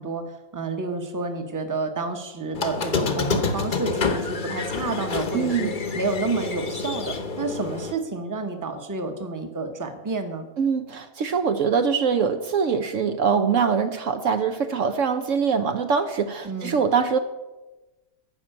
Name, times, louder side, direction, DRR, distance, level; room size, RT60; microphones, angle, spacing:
voice 1, 0.0-10.5 16.4-16.8, right 3 dB, 15° right, 6 dB, 1.0 m, -30 dB
Squeak, 2.5-7.9, left 4 dB, 40° left, 1.0 m, -28 dB
voice 2, 5.3-5.8 10.6-17.2, right 6 dB, 65° right, 8 dB, 1.0 m, -23 dB
12.0 x 5.8 x 8.9 m, 1.1 s
omnidirectional pair, 1.5 m